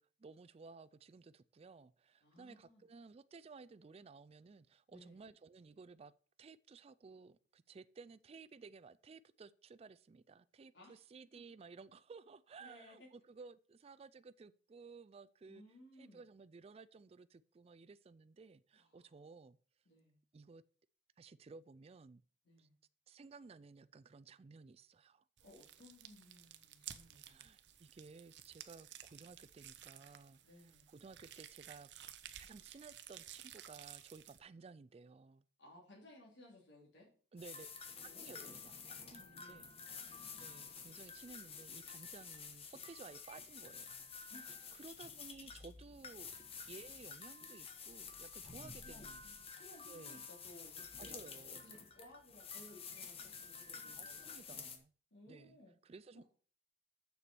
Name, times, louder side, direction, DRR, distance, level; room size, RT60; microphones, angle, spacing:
voice 1, 0.0-6.1 6.4-15.6 15.9-19.6 20.3-20.6 21.2-22.2 22.6-22.7 23.1-25.2 27.3-31.9 32.4-35.4 37.3-37.7 38.1-38.8 39.1-39.9 40.4-44.1 44.4-46.3 46.7-49.2 49.8-50.3 51.0-51.6 54.0-54.9 55.3-55.6 55.8-56.2, right 4 dB, 35° right, 0.3 m, -56 dB
voice 2, 2.2-2.8 4.9-5.2 10.7-10.9 12.6-13.1 15.4-16.3 18.7-19.1 19.8-20.2 22.4-22.7 25.4-27.5 30.4-30.9 35.6-37.1 38.0-38.6 39.1-39.8 44.3-44.8 48.4-48.5 48.8-49.1 49.5-54.5 55.1-55.8 56.1-56.2, left 1 dB, 80° left, 3.2 m, -60 dB
sound 1, 25.4-34.4, right 11 dB, 65° right, 0.8 m, -55 dB
sound 2, 37.4-54.8, left 6 dB, 35° left, 1.2 m, -50 dB
7.0 x 6.8 x 6.1 m
head